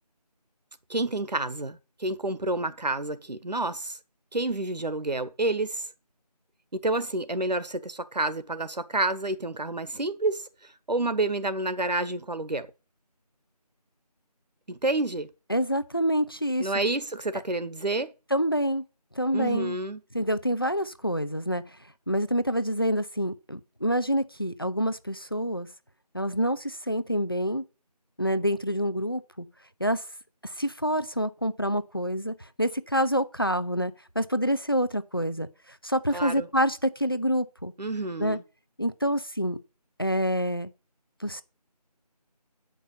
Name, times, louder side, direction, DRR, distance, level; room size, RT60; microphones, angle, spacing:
voice 1, 0.9-4.0 4.3-5.9 6.7-12.7 14.7-15.3 16.6-18.1 19.3-20.0 36.1-36.5 37.8-38.4, right 2 dB, 90° right, 1.4 m, -29 dB
voice 2, 15.5-16.7 18.3-18.8 19.1-19.8 20.1-21.6 22.1-25.7 26.1-27.6 28.2-29.5 29.8-30.0 30.4-37.7 38.2-38.4 38.8-39.6 40.0-40.7 41.2-41.4, equal, 35° left, 0.5 m, -27 dB
8.7 x 5.4 x 7.0 m
figure-of-eight pair, 175°, 21 cm